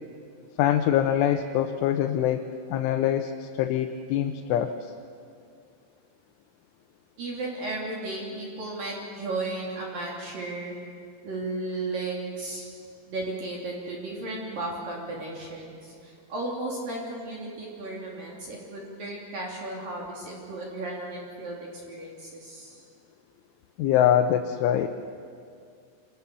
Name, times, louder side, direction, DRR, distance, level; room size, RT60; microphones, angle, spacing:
voice 1, 0.6-4.9 23.8-24.9, left 10 dB, 80° left, 4 dB, 3.3 m, -24 dB
voice 2, 7.2-10.8 11.2-12.7 13.1-22.8, right 2 dB, 50° right, -3 dB, 4.5 m, -34 dB
27.5 x 26.0 x 7.0 m, 2.4 s
omnidirectional pair, 5.6 m